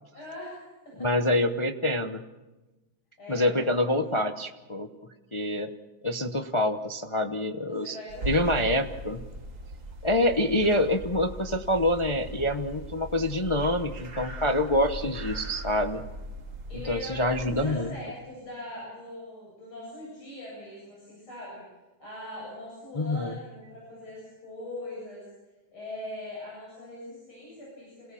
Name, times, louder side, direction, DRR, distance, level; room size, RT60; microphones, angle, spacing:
voice 1, 0.1-1.1 3.2-3.9 7.7-8.5 15.0-15.3 16.7-21.6 22.0-25.3 25.7-28.1, left 1 dB, 85° left, -5 dB, 8.9 m, -41 dB
voice 2, 1.0-2.2 3.3-4.9 5.3-5.7 6.0-8.0 8.3-9.2 10.0-16.0 16.9-17.9 22.9-23.4, left 1 dB, 55° left, 6 dB, 0.3 m, -26 dB
sound 1, 8.1-17.8, right 1 dB, 40° right, 1.9 m, -39 dB
28.0 x 18.5 x 7.1 m, 1.1 s
omnidirectional pair, 2.2 m